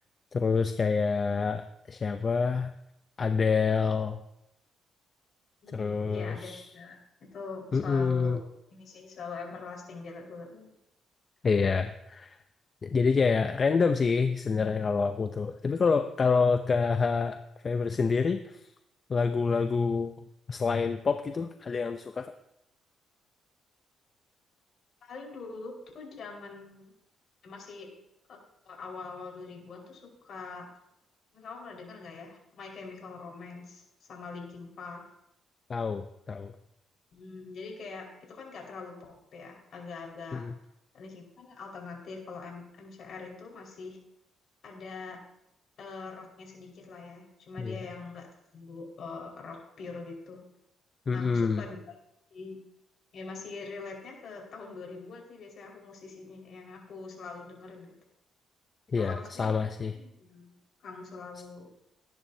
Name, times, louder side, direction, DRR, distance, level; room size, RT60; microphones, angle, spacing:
voice 1, 0.3-2.7 3.2-4.2 5.7-6.6 7.7-8.4 11.4-12.4 12.8-17.4 17.6-18.6 19.1-20.1 20.5-22.3 35.7-36.5 40.3-40.5 47.6-47.8 51.1-51.6 58.9-59.9, left 5 dB, 40° left, 8 dB, 0.7 m, -27 dB
voice 2, 5.6-8.4 8.7-10.7 25.0-26.9 27.4-27.9 28.3-28.4 28.6-30.7 31.3-33.8 34.1-35.0 37.1-40.4 40.9-44.0 44.6-45.2 45.8-48.3 48.5-50.4 51.1-51.8 52.3-52.6 53.1-57.9 59.0-59.6 59.9-61.7, left 4 dB, 60° left, 0 dB, 5.0 m, -43 dB
19.0 x 10.5 x 2.8 m, 0.82 s
cardioid pair, 90°, 0 cm